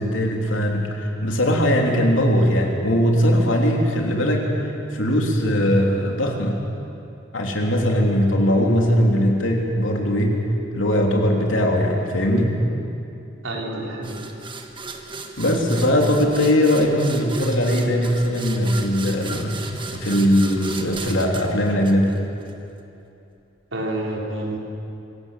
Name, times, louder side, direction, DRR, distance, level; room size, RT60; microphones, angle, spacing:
voice 1, 0.0-6.6 7.3-10.4 10.7-12.6 15.4-19.6 19.9-22.1, equal, 85° left, 1 dB, 3.2 m, -20 dB
voice 2, 13.4-14.2 23.7-24.6, right 1 dB, 80° right, -2 dB, 4.3 m, -28 dB
sound 1, 14.0-22.5, right 3 dB, 25° right, 1.5 m, -35 dB
25.0 x 16.5 x 7.5 m, 2.8 s
head